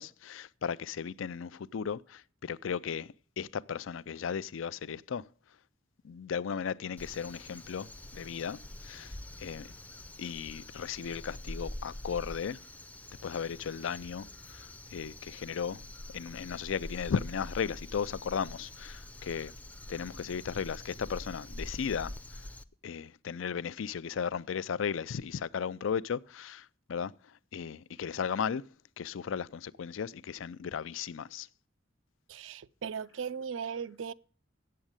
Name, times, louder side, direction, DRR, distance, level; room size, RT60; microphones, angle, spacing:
voice 1, 0.0-5.3 6.0-9.7 10.2-12.6 13.2-15.8 16.1-19.5 19.9-22.1 22.8-28.7 29.0-31.5, left 7 dB, 85° left, 0.4 m, -36 dB
Crow, 7.0-22.6, left 1 dB, 10° left, 0.4 m, -45 dB
voice 2, 32.3-34.1, right 6 dB, 80° right, 0.5 m, -38 dB
8.1 x 7.7 x 8.7 m
head